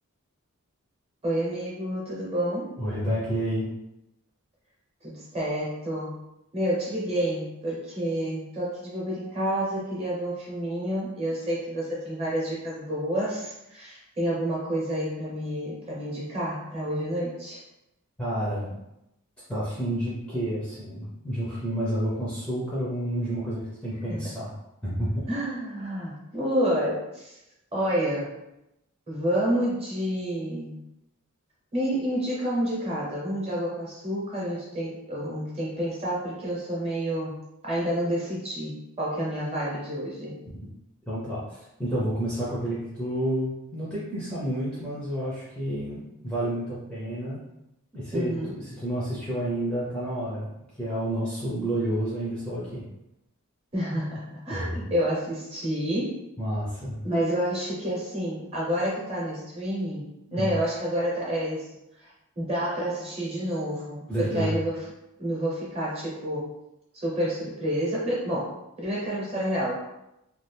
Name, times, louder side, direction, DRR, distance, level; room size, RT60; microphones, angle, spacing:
voice 1, 1.2-2.7 5.0-6.2 6.5-17.6 24.1-24.2 25.3-27.4 27.7-28.3 29.1-30.8 31.7-40.4 48.1-48.5 53.7-56.2 57.0-61.7 62.0-62.1 62.4-64.8 65.2-66.5 66.9-69.7, equal, 25° right, -5 dB, 1.0 m, -29 dB
voice 2, 2.8-3.7 18.2-18.7 19.5-24.5 24.8-25.3 40.5-40.6 41.1-47.4 47.9-50.5 50.8-52.8 54.5-54.8 56.4-57.0 60.3-60.5 64.1-64.6, right 1 dB, 5° left, -9 dB, 0.6 m, -30 dB
2.7 x 2.4 x 3.3 m, 0.87 s
head